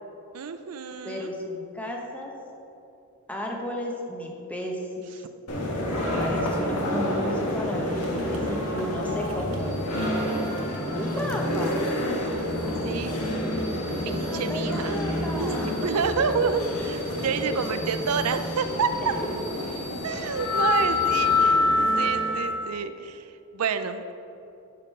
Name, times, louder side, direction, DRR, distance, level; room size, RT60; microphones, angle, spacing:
voice 1, 0.3-1.3 5.2-5.3 12.8-13.2 14.0-15.0 15.4-19.1 20.0-24.2, right 5 dB, 90° right, 9 dB, 0.5 m, -29 dB
voice 2, 1.0-2.3 3.3-5.1 6.1-9.8 10.9-11.8 13.9-15.8 16.7-16.8 17.5-17.6 19.0-19.5, equal, 5° left, 0 dB, 1.0 m, -34 dB
sound 1, 5.5-22.6, left 1 dB, 90° left, 1.5 m, -27 dB
sound 2, 7.9-17.4, right 2 dB, 70° right, 1.1 m, -43 dB
sound 3, 9.5-21.4, left 1 dB, 55° left, 2.1 m, -45 dB
10.5 x 5.2 x 5.5 m, 2.8 s
head